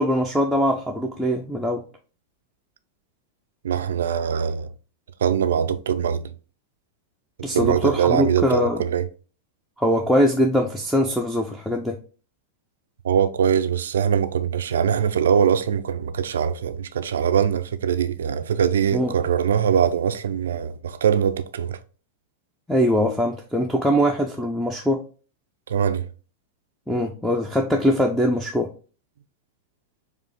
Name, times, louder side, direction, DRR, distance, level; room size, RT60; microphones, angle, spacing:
voice 1, 0.0-1.8 7.4-8.8 9.8-12.0 18.9-19.1 22.7-25.0 26.9-28.7, equal, ahead, 0.5 m, -22 dB
voice 2, 3.6-4.7 5.2-6.3 7.5-9.1 13.0-21.8 25.7-26.1, right 8 dB, 65° right, 0.3 m, -22 dB
4.7 x 2.4 x 3.5 m
figure-of-eight pair, 95°, 0 cm